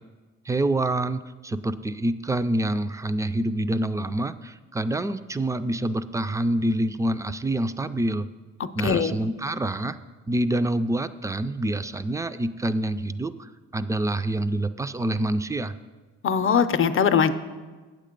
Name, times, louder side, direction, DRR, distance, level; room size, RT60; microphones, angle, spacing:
voice 1, 0.5-8.3 8.8-10.0 10.3-15.7, right 1 dB, 10° right, 12 dB, 0.3 m, -26 dB
voice 2, 8.8-9.1 16.2-17.3, left 7 dB, 45° left, 10 dB, 0.6 m, -21 dB
8.5 x 7.6 x 5.2 m, 1.3 s
cardioid pair, 90°, 30 cm